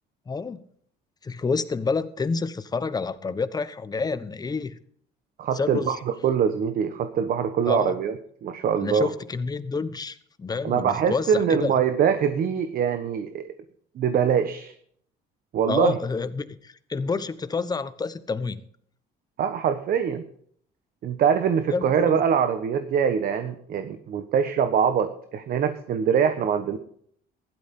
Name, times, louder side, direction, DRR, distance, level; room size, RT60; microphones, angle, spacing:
voice 1, 0.3-0.6 1.2-4.8 5.5-6.0 7.7-7.9 8.8-11.7 15.7-18.6 21.7-22.2, left 4 dB, 25° left, 13 dB, 1.1 m, -28 dB
voice 2, 5.4-6.0 6.2-9.1 10.6-13.5 14.0-14.7 15.5-16.0 19.4-20.2 21.0-26.8, right 7 dB, 60° right, 8 dB, 1.2 m, -23 dB
15.5 x 12.5 x 3.8 m, 0.62 s
cardioid pair, 110°, 17 cm